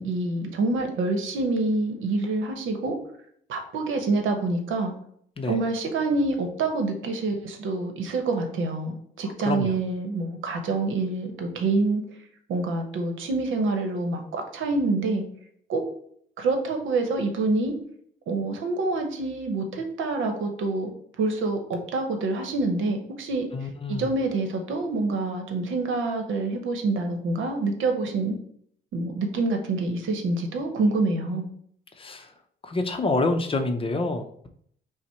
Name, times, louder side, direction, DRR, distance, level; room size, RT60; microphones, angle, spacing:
voice 1, 0.0-3.0 3.5-4.9 5.5-12.0 12.5-15.2 15.7-15.8 16.4-17.7 18.3-20.9 21.2-23.5 23.9-28.3 28.9-31.5, right 3 dB, 80° right, 5 dB, 0.9 m, -26 dB
voice 2, 9.4-9.8 23.5-24.1 32.0-32.3 32.6-34.5, left 2 dB, 25° left, 6 dB, 0.6 m, -27 dB
5.6 x 2.1 x 4.3 m, 0.65 s
cardioid pair, 90°, 20 cm